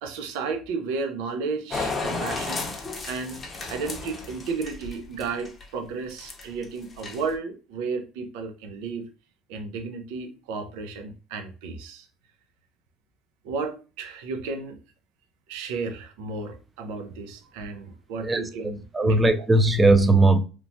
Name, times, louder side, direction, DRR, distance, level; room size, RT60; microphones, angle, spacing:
voice 1, 0.0-2.7 3.1-3.4 3.7-9.1 9.5-12.1 13.4-14.8 15.5-19.2, right 4 dB, 80° right, 0.5 m, -33 dB
sound 1, 1.7-5.6 6.1-6.6 6.9-7.3, left 3 dB, 25° left, 0.6 m, -33 dB
voice 2, 18.2-20.4, right 2 dB, 15° right, 0.4 m, -19 dB
3.0 x 2.1 x 2.6 m
cardioid pair, 120°, 0 cm